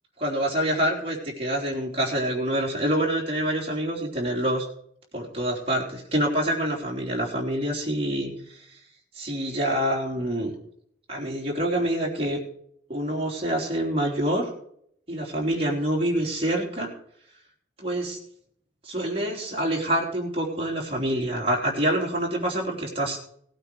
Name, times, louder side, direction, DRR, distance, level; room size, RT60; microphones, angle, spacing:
voice 1, 0.2-4.7 5.1-8.8 9.1-10.5 11.1-12.4 12.9-14.5 15.1-16.9 17.8-18.2 18.8-23.2, right 1 dB, 30° right, -2 dB, 3.5 m, -26 dB
18.0 x 8.9 x 4.8 m, 0.67 s
head